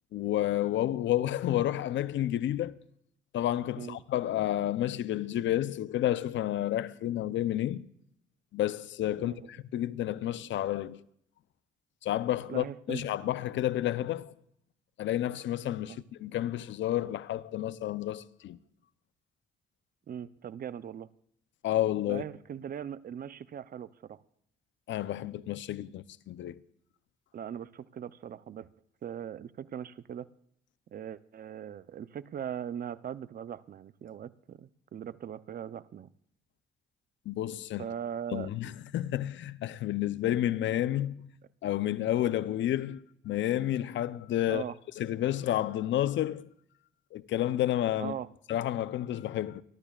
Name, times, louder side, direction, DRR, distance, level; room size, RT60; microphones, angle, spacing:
voice 1, 0.1-2.7 3.3-7.9 8.5-11.0 12.0-14.3 15.0-18.6 21.6-22.2 24.9-26.6 37.3-37.8 38.3-41.3 41.6-44.6 45.0-46.5 47.1-48.1 48.5-49.6, left 13 dB, 70° left, 0.7 m, -30 dB
voice 2, 9.2-9.5 12.5-13.1 15.9-16.0 20.1-21.1 22.1-24.2 27.3-28.7 29.0-30.3 30.9-36.1 37.8-38.5 44.5-44.8 48.0-48.3, right 9 dB, 50° right, 0.6 m, -40 dB
27.0 x 12.0 x 2.4 m
cardioid pair, 90°, 20 cm